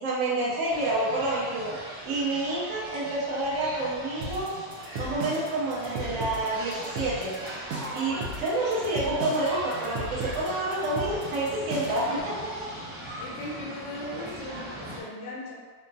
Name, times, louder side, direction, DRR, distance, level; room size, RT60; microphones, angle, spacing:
voice 1, 0.0-1.8 2.0-4.5 4.9-7.3 7.9-12.2, right 2 dB, 60° right, -7 dB, 1.2 m, -28 dB
sound 1, 0.7-15.0, right 1 dB, 25° right, 0.6 m, -40 dB
sound 2, 4.2-12.1, right 1 dB, 75° right, 0.8 m, -36 dB
voice 2, 11.9-12.3 13.2-15.5, left 2 dB, 75° left, -5 dB, 1.1 m, -38 dB
3.5 x 2.0 x 2.6 m, 1.5 s
omnidirectional pair, 2.0 m